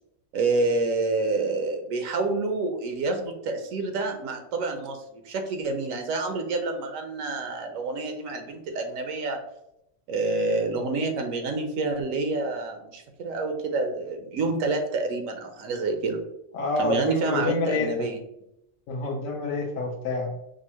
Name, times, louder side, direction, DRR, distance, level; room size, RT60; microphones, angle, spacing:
voice 1, 0.3-9.4 10.1-16.2 16.8-18.2, right 3 dB, 85° right, 5 dB, 1.0 m, -28 dB
voice 2, 16.5-18.1 18.9-20.4, left 3 dB, 80° left, -1 dB, 1.0 m, -28 dB
5.2 x 2.0 x 2.8 m, 0.81 s
omnidirectional pair, 1.4 m